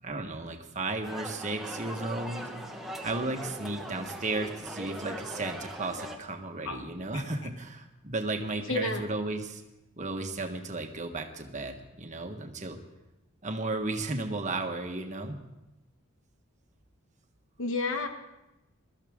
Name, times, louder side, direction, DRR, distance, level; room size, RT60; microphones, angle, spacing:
voice 1, 0.0-2.5 3.0-9.6 10.0-12.8 13.4-15.4, right 2 dB, 35° right, 4 dB, 1.4 m, -34 dB
sound 1, 1.0-6.2, equal, ahead, 1.2 m, -40 dB
voice 2, 8.7-9.0 17.6-18.1, left 3 dB, 60° left, 6 dB, 1.1 m, -30 dB
22.0 x 13.0 x 3.7 m, 0.96 s
head